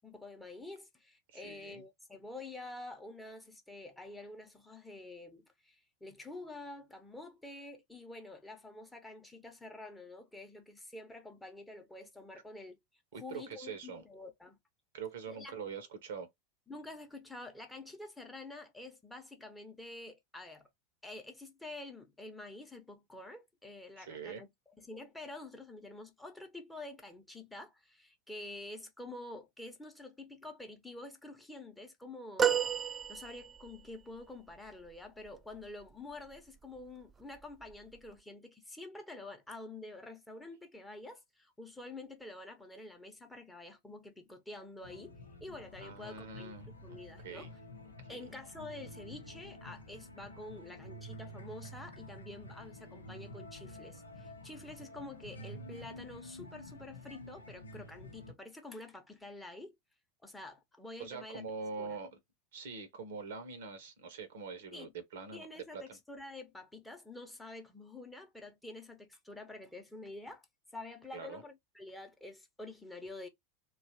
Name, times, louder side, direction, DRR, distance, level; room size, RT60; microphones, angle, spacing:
voice 1, 0.0-12.8 13.1-14.6 15.3-15.5 16.7-20.7 21.0-24.5 24.8-47.5 48.1-59.8 60.2-61.4 61.8-62.0 64.7-64.9 65.3-70.5 70.7-73.3, left 2 dB, 5° left, 0.8 m, -48 dB
voice 2, 1.3-1.8 13.1-14.0 14.9-16.3 24.0-24.4 45.8-47.5 48.0-48.2 61.0-62.2 62.5-66.0 71.1-71.4, right 5 dB, 60° right, 0.8 m, -44 dB
sound 1, 32.4-33.8 36.2-36.4 37.7-37.8, right 8 dB, 20° right, 0.4 m, -31 dB
sound 2, 44.8-58.3, left 1 dB, 80° left, 0.6 m, -49 dB
2.8 x 2.4 x 2.7 m
figure-of-eight pair, 85°, 0 cm